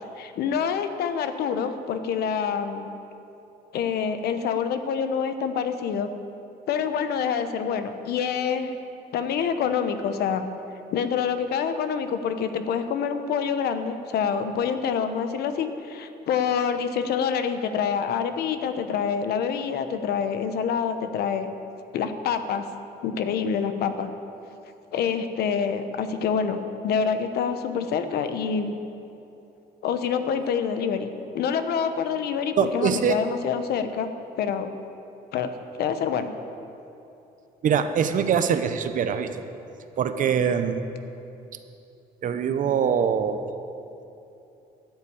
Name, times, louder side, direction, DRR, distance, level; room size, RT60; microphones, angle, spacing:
voice 1, 0.2-2.9 3.7-6.1 6.7-8.7 9.1-10.5 10.9-21.5 21.9-22.6 23.0-24.1 24.9-28.8 29.8-34.1 34.4-34.7 35.3-35.5 35.8-36.3, left 7 dB, 70° left, 9 dB, 1.0 m, -26 dB
voice 2, 32.6-33.2 37.6-39.4 40.0-40.8 42.2-43.4, right 7 dB, 50° right, 9 dB, 0.8 m, -23 dB
13.0 x 7.3 x 8.7 m, 2.8 s
cardioid pair, 110°, 17 cm